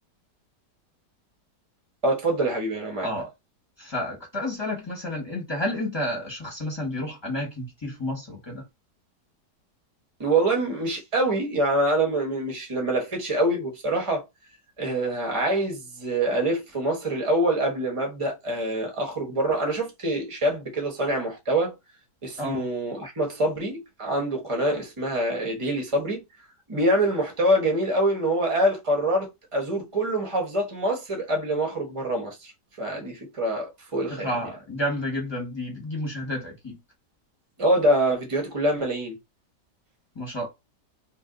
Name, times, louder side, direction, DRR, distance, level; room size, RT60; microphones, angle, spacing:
voice 1, 2.0-3.1 10.2-14.2 14.8-21.7 22.2-26.2 26.7-32.5 32.8-34.3 37.6-39.2, right 1 dB, 25° right, 0.8 m, -25 dB
voice 2, 3.8-8.6 22.4-22.7 34.1-36.8 40.1-40.5, left 1 dB, 20° left, 1.0 m, -30 dB
2.6 x 2.6 x 3.6 m
omnidirectional pair, 1.9 m